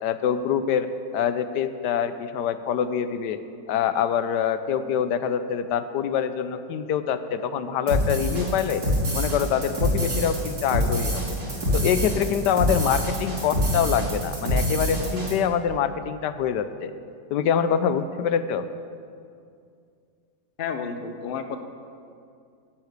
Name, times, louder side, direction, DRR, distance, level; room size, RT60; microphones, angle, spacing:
voice 1, 0.0-3.4 3.7-8.8 9.1-11.2 11.7-16.9 17.3-18.7, left 8 dB, 80° left, 11 dB, 1.2 m, -25 dB
sound 1, 7.9-15.3, equal, 65° right, 3.7 m, -25 dB
voice 2, 20.6-21.6, left 6 dB, 45° left, 7 dB, 0.7 m, -31 dB
12.5 x 7.4 x 8.2 m, 2.3 s
omnidirectional pair, 1.8 m